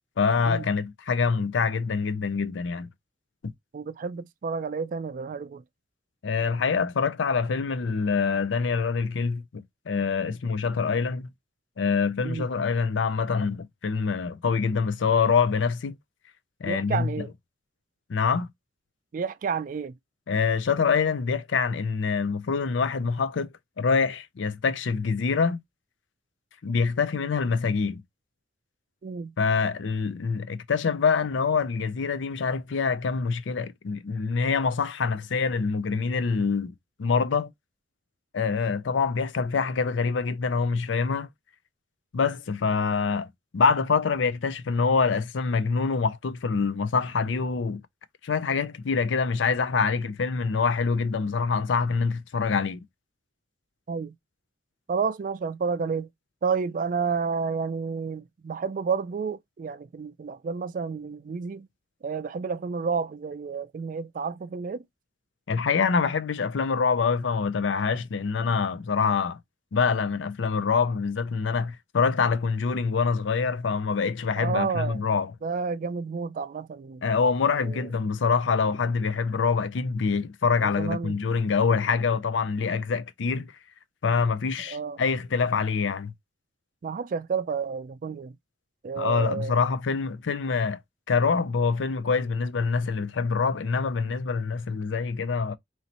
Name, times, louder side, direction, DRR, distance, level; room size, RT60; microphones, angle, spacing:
voice 1, 0.2-2.9 6.2-11.3 11.8-16.0 16.6-17.2 18.1-18.5 20.3-23.5 23.8-25.6 26.6-28.0 29.4-36.7 37.0-37.5 38.3-41.3 42.1-43.3 43.5-47.8 48.2-52.8 65.5-69.4 69.7-75.3 77.0-83.5 84.0-86.1 89.0-90.8 91.1-95.5, left 5 dB, 75° left, 0.5 m, -25 dB
voice 2, 3.7-5.6 12.2-12.5 16.7-17.3 19.1-19.9 29.0-29.3 53.9-54.2 54.9-56.1 56.4-61.7 62.0-64.8 74.4-75.0 75.4-77.0 77.6-77.9 80.6-81.2 84.7-85.0 86.8-88.3 88.8-89.6, right 5 dB, 45° right, 0.3 m, -30 dB
3.1 x 2.9 x 4.1 m
head